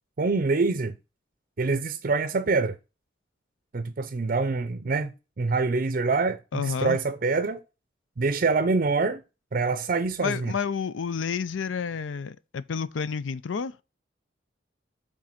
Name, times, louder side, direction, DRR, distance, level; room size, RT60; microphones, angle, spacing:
voice 1, 0.2-0.9 1.6-2.8 3.7-7.6 8.2-9.2 9.5-10.5, right 3 dB, 45° right, 0.5 m, -25 dB
voice 2, 6.5-7.0 10.2-13.7, left 6 dB, 85° left, 0.5 m, -30 dB
7.3 x 3.8 x 5.8 m
head